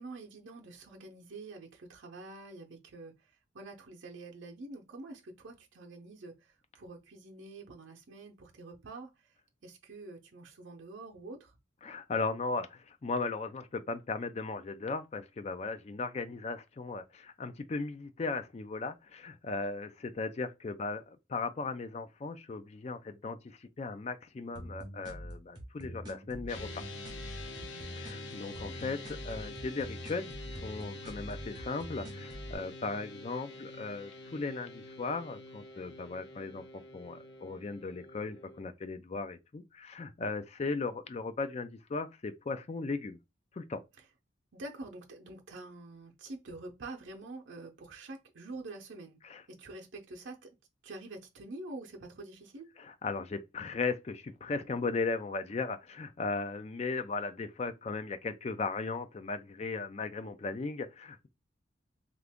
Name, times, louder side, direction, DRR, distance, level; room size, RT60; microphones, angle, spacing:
voice 1, 0.0-9.4 9.6-11.6 27.6-27.9 44.0-44.1 44.5-49.2 49.5-50.6 50.8-52.7, right 2 dB, 75° right, 0.6 m, -47 dB
voice 2, 11.8-26.7 28.0-30.3 30.6-43.2 43.5-43.8 49.2-49.4 52.8-61.3, left 3 dB, 35° left, 0.4 m, -37 dB
sound 1, 24.5-32.5, equal, 20° right, 0.9 m, -44 dB
sound 2, 26.5-38.6, left 2 dB, 75° left, 0.6 m, -47 dB
2.8 x 2.5 x 3.5 m
head